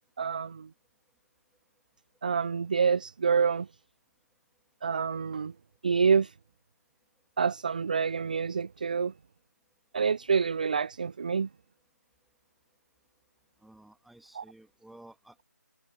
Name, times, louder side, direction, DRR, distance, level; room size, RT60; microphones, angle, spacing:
voice 1, 0.2-0.7 2.2-3.7 4.8-5.5 5.8-6.3 7.4-9.1 9.9-11.5 14.3-14.4, right 6 dB, 25° right, 0.3 m, -27 dB
voice 2, 13.6-15.4, right 1 dB, ahead, 2.4 m, -54 dB
figure-of-eight pair, 160°, 9 cm